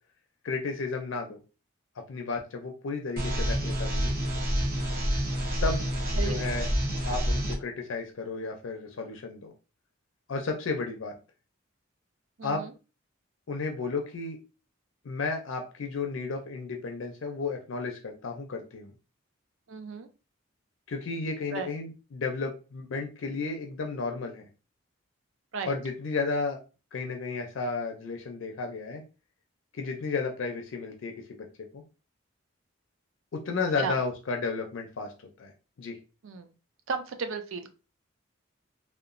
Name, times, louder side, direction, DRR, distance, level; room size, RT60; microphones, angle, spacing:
voice 1, 0.4-1.4 2.1-4.1 5.6-5.8 6.2-6.7 7.0-9.5 10.3-11.1 12.4-12.6 13.5-14.4 15.0-18.9 20.9-24.5 25.6-26.6 26.9-29.0 29.7-31.2 31.7-31.8 33.3-35.1 35.4-35.5 35.8-36.0, left 4 dB, 70° left, 3 dB, 0.4 m, -33 dB
sound 1, 3.2-7.5, equal, 45° right, 0.8 m, -28 dB
voice 2, 6.2-6.6 12.4-12.7 19.7-20.1 21.5-21.7 25.5-25.8 33.8-34.0 36.2-36.5 36.9-37.7, right 5 dB, 70° right, 7 dB, 0.4 m, -35 dB
2.9 x 2.1 x 2.5 m, 0.32 s
head